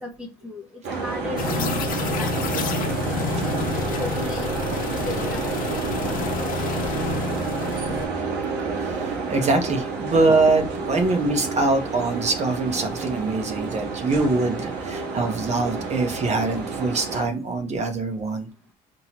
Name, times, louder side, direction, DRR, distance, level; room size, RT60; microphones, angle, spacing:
voice 1, 0.0-3.2 4.0-5.8, left 2 dB, 5° right, 1 dB, 0.9 m, -36 dB
sound 1, 0.8-17.3, right 4 dB, 80° right, 1.2 m, -29 dB
sound 2, 1.4-8.1, left 6 dB, 55° left, 0.8 m, -29 dB
voice 2, 8.8-18.5, right 3 dB, 40° right, 5 dB, 0.9 m, -23 dB
4.3 x 2.8 x 2.9 m, 0.29 s
cardioid pair, 110°, 17 cm